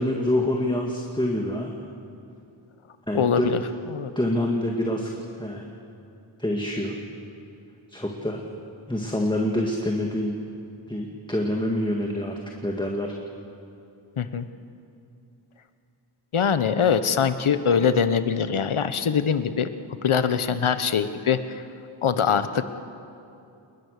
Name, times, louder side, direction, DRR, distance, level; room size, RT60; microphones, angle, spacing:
voice 1, 0.0-1.7 3.1-3.5 4.2-5.1 5.4-5.7 6.4-7.0 7.9-8.4 8.9-10.4 10.9-12.3 12.6-13.1, left 1 dB, 10° left, 0 dB, 2.1 m, -26 dB
voice 2, 3.1-3.6 3.9-4.1 14.2-14.5 16.3-19.7 20.0-21.6 22.0-22.6, left 7 dB, 80° left, 11 dB, 1.2 m, -23 dB
29.0 x 20.5 x 6.7 m, 2.6 s
wide cardioid pair, 95°, 49 cm